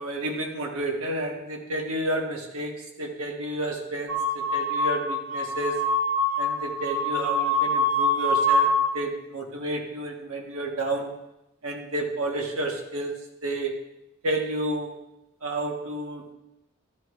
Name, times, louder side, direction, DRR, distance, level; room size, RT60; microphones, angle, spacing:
voice 1, 0.0-5.9 6.4-11.1 11.6-13.1 13.4-13.8 14.2-14.9 15.4-16.3, right 1 dB, 85° right, 2 dB, 1.4 m, -31 dB
sound 1, 4.1-8.9, left 1 dB, 65° right, 0.9 m, -24 dB
12.0 x 9.6 x 2.5 m, 0.89 s
head